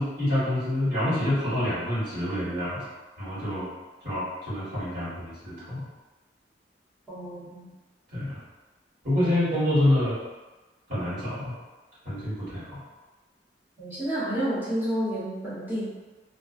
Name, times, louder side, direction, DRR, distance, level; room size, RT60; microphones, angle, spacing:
voice 1, 0.0-2.8 3.2-3.7 4.0-5.8 8.1-8.4 9.0-10.1 10.9-11.5 12.0-12.8, left 1 dB, 50° right, -12 dB, 1.5 m, -27 dB
voice 2, 7.1-7.6 13.8-15.9, equal, 10° right, -10 dB, 0.9 m, -30 dB
2.5 x 2.2 x 2.4 m, 1.2 s
head